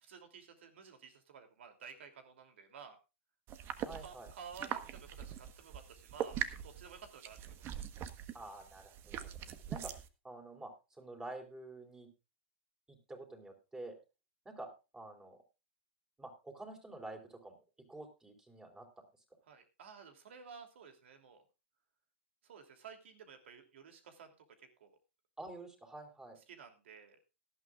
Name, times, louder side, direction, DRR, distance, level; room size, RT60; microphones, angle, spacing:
voice 1, 0.0-3.0 4.0-6.4 6.6-7.5 19.5-21.4 22.4-24.3 24.6-25.0 26.5-27.2, right 6 dB, 75° right, 6 dB, 2.9 m, -53 dB
sound 1, 3.5-10.1, right 10 dB, 35° right, 1.2 m, -43 dB
voice 2, 3.8-4.3 8.3-9.3 9.7-9.9 10.2-10.7 11.0-12.1 12.9-14.0 14.5-15.4 16.2-19.0 25.4-26.4, right 2 dB, 10° right, 3 dB, 3.8 m, -49 dB
18.0 x 11.5 x 2.4 m, 0.28 s
hypercardioid pair, 120°, 7 cm